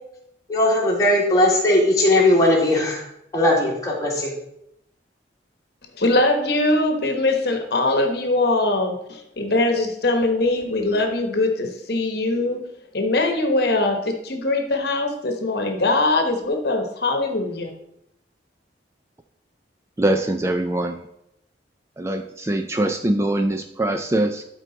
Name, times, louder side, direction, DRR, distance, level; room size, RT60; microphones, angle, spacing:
voice 1, 0.5-3.0 3.3-4.3, left 1 dB, 20° left, -3 dB, 2.0 m, -18 dB
voice 2, 6.0-12.6 12.9-17.7, left 2 dB, 60° left, 4 dB, 1.1 m, -22 dB
voice 3, 20.0-21.0 22.0-24.4, right 1 dB, 15° right, 6 dB, 0.4 m, -23 dB
12.0 x 4.6 x 4.0 m, 0.79 s
head